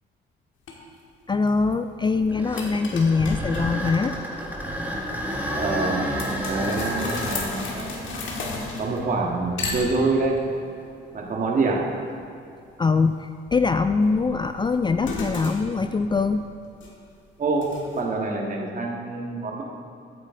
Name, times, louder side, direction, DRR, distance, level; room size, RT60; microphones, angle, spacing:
sound 1, 0.7-0.8 1.3-1.7 2.1-2.2 2.6-3.9 6.2-9.2 9.6-10.4 14.0-17.1 17.6-18.0, left 3 dB, 75° left, 1.8 m, -33 dB
voice 1, 1.3-4.2 12.8-16.5, left 4 dB, 25° left, 9 dB, 0.3 m, -23 dB
sound 2, 2.1-10.2 10.8-10.9 11.6-11.8 15.3-15.6, equal, 10° right, 2.0 m, -32 dB
voice 2, 5.5-6.1 6.5-8.1 8.8-10.4 11.1-11.9 17.4-19.6, right 3 dB, 45° right, -1 dB, 1.8 m, -26 dB
13.5 x 9.0 x 3.8 m, 2.5 s
cardioid pair, 90°, 20 cm